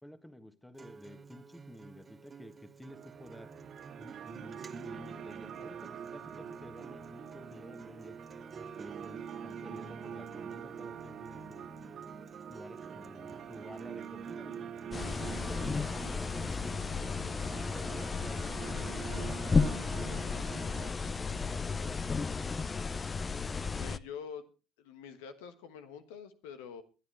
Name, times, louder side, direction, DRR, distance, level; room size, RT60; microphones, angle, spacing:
voice 1, 0.0-3.5 4.0-8.2 8.6-11.7 12.5-14.7 15.0-17.0 17.5-20.6 21.0-22.7, left 1 dB, 5° left, 11 dB, 1.6 m, -51 dB
Acoustic guitar, 0.7-16.8, right 4 dB, 25° right, 1.1 m, -53 dB
sound 1, 2.9-20.9, right 7 dB, 50° right, 1.8 m, -45 dB
sound 2, 14.9-24.0, left 4 dB, 25° left, 0.6 m, -33 dB
voice 2, 23.8-24.5 24.8-26.8, left 7 dB, 70° left, 10 dB, 1.2 m, -46 dB
22.0 x 10.5 x 3.2 m, 0.32 s
figure-of-eight pair, 60°, 0 cm